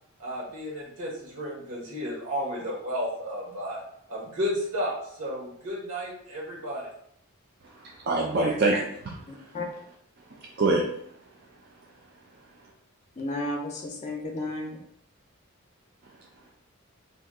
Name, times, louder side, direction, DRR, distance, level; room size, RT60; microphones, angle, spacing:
voice 1, 0.2-3.8 4.1-6.9, equal, 90° right, -4 dB, 1.2 m, -32 dB
voice 2, 7.8-9.2 10.3-10.8, right 2 dB, 45° right, -2 dB, 0.4 m, -25 dB
voice 3, 9.3-9.7 13.2-14.8, left 2 dB, 30° left, 2 dB, 0.4 m, -33 dB
2.7 x 2.2 x 3.4 m, 0.69 s
head